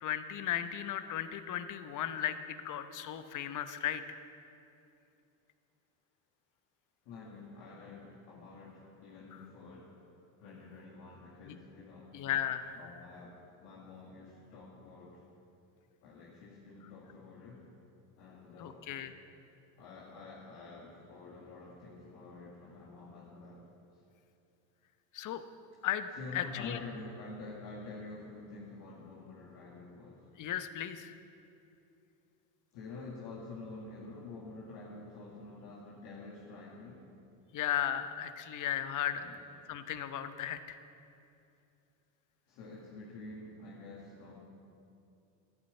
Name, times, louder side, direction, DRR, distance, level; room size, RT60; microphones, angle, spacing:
voice 1, 0.0-4.2 11.4-11.5 12.1-12.8 18.6-19.1 25.1-25.4 25.8-26.8 30.4-31.2 37.5-39.2 39.7-40.8, left 10 dB, 45° left, 10 dB, 0.9 m, -36 dB
voice 2, 7.1-10.0 10.4-12.2 12.8-15.2 16.0-17.6 18.2-18.9 19.8-23.6 26.2-30.3 32.7-37.0 39.1-39.4 42.5-44.4, left 3 dB, 70° left, -4 dB, 2.0 m, -48 dB
11.5 x 9.3 x 8.0 m, 2.7 s
supercardioid pair, 95°, 42 cm